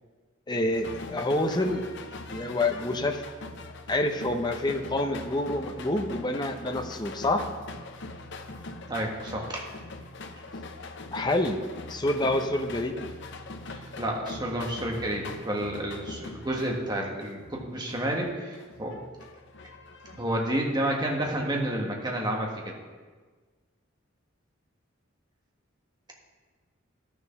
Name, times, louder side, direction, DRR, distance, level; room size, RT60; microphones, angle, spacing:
voice 1, 0.5-1.9 2.3-3.2 3.9-7.4 11.1-11.6 11.9-13.0, left 1 dB, 20° left, 5 dB, 0.7 m, -27 dB
sound 1, 0.7-20.6, left 3 dB, 60° left, 0.8 m, -42 dB
voice 2, 8.9-9.7 13.7-19.0 20.1-22.7, right 1 dB, 20° right, -1 dB, 1.6 m, -30 dB
12.0 x 7.0 x 5.8 m, 1.4 s
head